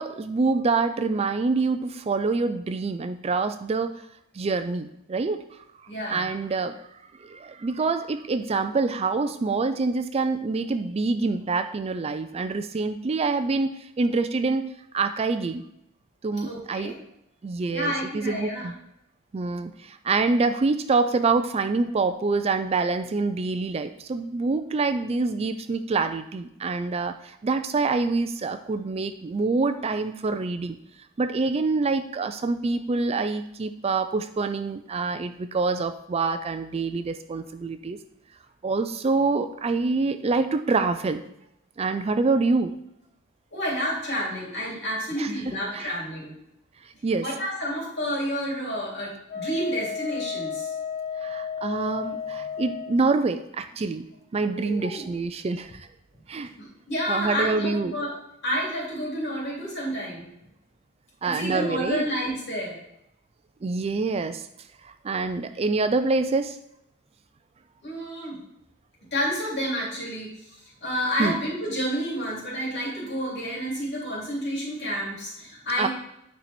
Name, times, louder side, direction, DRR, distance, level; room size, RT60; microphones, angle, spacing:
voice 1, 0.0-3.9 4.3-5.4 6.1-6.8 7.2-15.6 16.2-16.9 17.4-18.8 19.3-30.8 31.2-38.0 38.6-41.2 41.8-42.8 45.2-45.9 47.0-47.3 51.2-54.0 54.3-55.9 56.3-56.5 57.1-57.9 61.2-62.0 63.6-64.5 64.8-66.6 71.2-71.4 75.8-75.9, right 3 dB, 30° right, 9 dB, 0.4 m, -26 dB
voice 2, 5.9-6.2 16.4-16.9 17.7-18.7 43.5-46.3 47.2-50.7 54.5-55.1 56.6-58.1 58.4-60.3 61.2-62.8 67.8-68.4 69.1-70.3 70.8-75.9, equal, 55° left, -4 dB, 3.0 m, -30 dB
Wind instrument woodwind instrument, 49.3-53.0, left 7 dB, 35° left, 2.1 m, -33 dB
9.2 x 4.6 x 4.3 m, 0.80 s
head